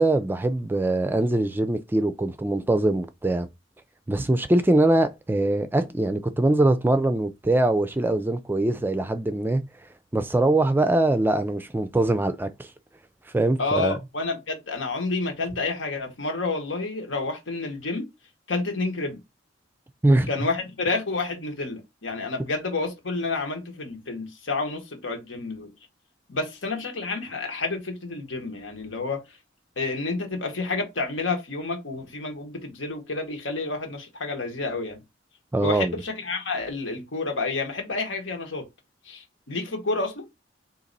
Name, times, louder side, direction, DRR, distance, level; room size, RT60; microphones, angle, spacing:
voice 1, 0.0-3.5 4.1-9.6 10.1-12.5 13.3-14.0 20.0-20.3 35.5-36.0, right 2 dB, 10° right, 0.3 m, -22 dB
voice 2, 13.6-18.1 18.5-19.2 20.3-25.7 26.3-29.4 29.8-35.0 35.6-38.6 39.0-40.3, left 3 dB, 90° left, 1.4 m, -29 dB
4.1 x 2.9 x 3.9 m
head